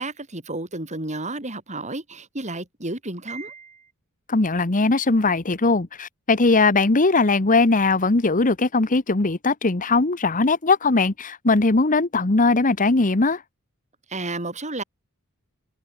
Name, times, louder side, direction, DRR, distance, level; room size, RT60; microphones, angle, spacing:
voice 1, 0.0-3.8 14.1-14.8, right 2 dB, 30° right, 6.6 m, -32 dB
voice 2, 4.3-13.4, left 3 dB, 35° left, 1.2 m, -20 dB
head